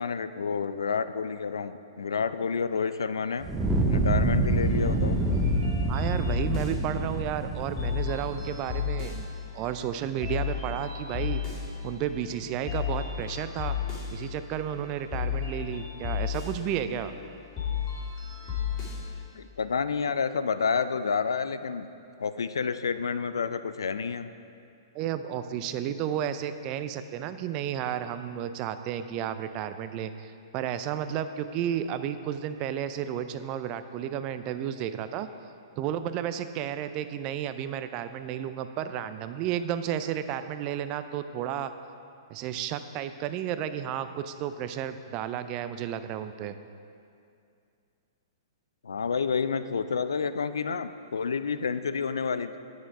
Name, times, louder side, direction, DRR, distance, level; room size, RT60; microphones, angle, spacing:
voice 1, 0.0-3.5 3.9-5.2 19.3-21.9 22.2-24.3 48.8-52.6, left 5 dB, 75° left, 12 dB, 0.4 m, -29 dB
Fire, 3.4-8.6, right 2 dB, 10° right, 0.7 m, -27 dB
sound 1, 4.4-19.2, left 8 dB, 35° left, 2.2 m, -34 dB
voice 2, 5.9-9.3 9.5-11.4 11.8-13.8 14.1-17.1 24.9-35.3 35.8-41.7 42.3-46.6, right 10 dB, 35° right, 11 dB, 0.4 m, -32 dB
9.0 x 6.4 x 4.8 m, 2.5 s
figure-of-eight pair, 115°, 2 cm